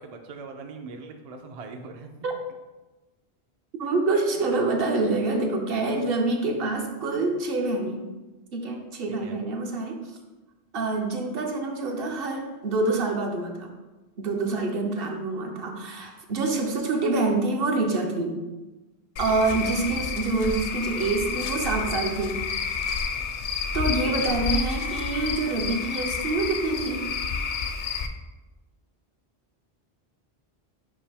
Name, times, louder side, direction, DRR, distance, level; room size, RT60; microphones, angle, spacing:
voice 1, 0.0-2.1 3.8-3.9 9.2-9.4 19.6-19.8 24.1-24.3, right 4 dB, 50° right, 4 dB, 0.5 m, -41 dB
voice 2, 3.8-8.1 8.5-10.1 10.7-13.7 14.2-18.4 19.2-22.4 23.7-27.2, right 3 dB, 65° right, 3 dB, 1.0 m, -26 dB
Cricket / Frog, 19.2-28.1, left 6 dB, 55° left, 0.6 m, -30 dB
5.3 x 5.1 x 3.4 m, 1.1 s
omnidirectional pair, 1.1 m